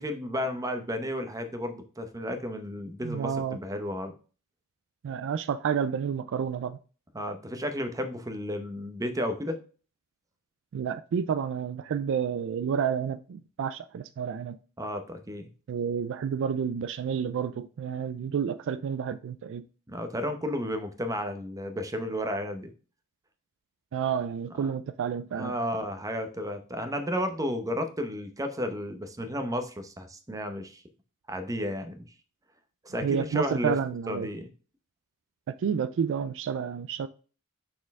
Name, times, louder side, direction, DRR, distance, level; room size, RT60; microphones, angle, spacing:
voice 1, 0.0-4.1 7.1-9.6 14.8-15.5 19.9-22.7 24.6-24.7 25.3-30.8 31.3-32.1 32.8-33.7 34.1-34.5, equal, 15° right, 0.8 m, -32 dB
voice 2, 3.0-3.6 5.0-6.8 10.7-14.6 15.7-19.6 23.9-25.5 33.0-34.3 35.6-37.1, right 7 dB, 60° right, 0.3 m, -30 dB
6.3 x 4.3 x 3.5 m
head